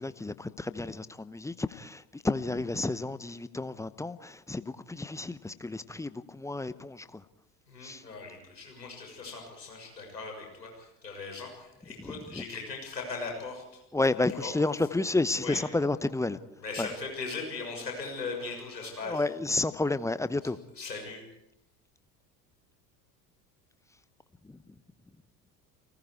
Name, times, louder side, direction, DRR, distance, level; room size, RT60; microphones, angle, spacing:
voice 1, 0.0-7.2 7.8-8.0 12.0-12.4 13.9-16.4 16.8-16.9 18.8-20.6 24.4-24.6, left 2 dB, 5° left, 13 dB, 0.9 m, -31 dB
voice 2, 7.7-13.6 14.4-14.5 15.4-15.6 16.6-19.2 20.8-21.2, left 4 dB, 80° left, 2 dB, 6.6 m, -39 dB
30.0 x 19.0 x 4.7 m, 0.82 s
figure-of-eight pair, 70°, 50 cm